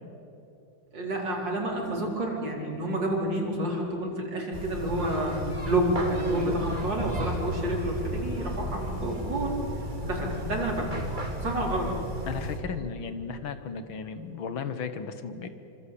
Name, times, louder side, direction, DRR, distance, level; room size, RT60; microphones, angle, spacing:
voice 1, 0.9-5.4 5.6-9.6 10.0-11.0 11.4-11.9, right 1 dB, 60° right, -1 dB, 5.1 m, -29 dB
sound 1, 4.5-12.6, equal, 20° right, 3.0 m, -33 dB
voice 2, 12.3-15.5, left 6 dB, 75° left, 10 dB, 2.2 m, -35 dB
26.5 x 26.0 x 8.5 m, 2.9 s
omnidirectional pair, 2.2 m